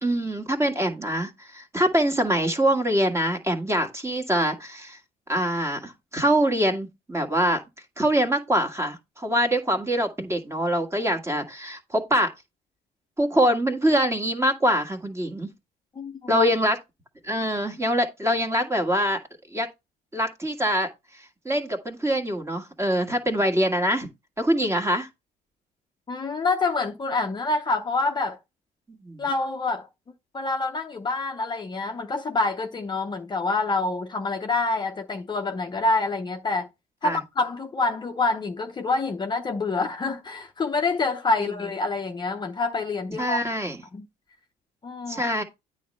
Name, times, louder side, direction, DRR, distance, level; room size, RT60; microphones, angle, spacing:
voice 1, 0.0-5.0 5.3-7.6 8.0-12.3 13.2-15.5 16.3-16.8 17.2-19.2 19.5-19.7 20.1-20.9 21.4-24.1 24.4-25.1 28.9-29.2 37.0-37.2 41.4-41.5 43.2-43.8 45.1-45.4, equal, 15° right, 1.7 m, -24 dB
voice 2, 16.0-16.4 26.1-28.4 29.2-29.9 30.3-36.7 37.0-43.4 43.9-44.1 44.8-45.2, left 3 dB, 25° left, 0.7 m, -26 dB
9.2 x 3.2 x 5.4 m
cardioid pair, 110°, 17 cm